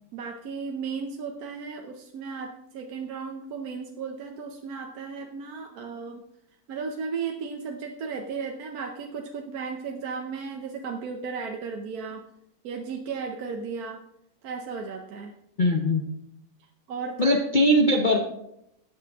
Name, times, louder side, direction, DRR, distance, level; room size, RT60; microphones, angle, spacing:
voice 1, 0.1-6.2 6.7-12.2 12.6-14.0 14.4-15.3 16.9-17.4, right 5 dB, 65° right, 3 dB, 1.3 m, -35 dB
voice 2, 15.6-16.0 17.2-18.2, equal, 40° left, 2 dB, 0.7 m, -20 dB
13.0 x 8.7 x 3.5 m, 0.80 s
omnidirectional pair, 1.8 m